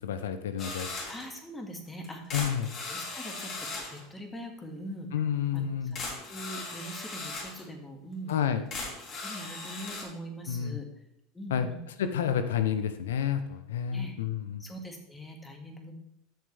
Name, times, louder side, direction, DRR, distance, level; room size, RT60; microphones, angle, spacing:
voice 1, 0.0-0.9 2.3-2.7 5.1-5.9 8.3-8.6 10.5-10.8 11.5-11.7 12.0-14.6, left 8 dB, 90° left, 10 dB, 0.7 m, -29 dB
sound 1, 0.6-1.3 2.0-4.0 5.6-5.7 6.0-7.6 8.3-8.4 8.7-10.0, left 3 dB, 40° left, 3.3 m, -38 dB
voice 2, 1.1-2.5 2.9-5.1 5.5-5.8 6.1-8.3 9.2-10.9 11.3-11.8 13.9-14.2 14.6-15.9, equal, 15° left, 3 dB, 2.0 m, -42 dB
13.0 x 6.5 x 3.4 m, 0.80 s
supercardioid pair, 105°, 0 cm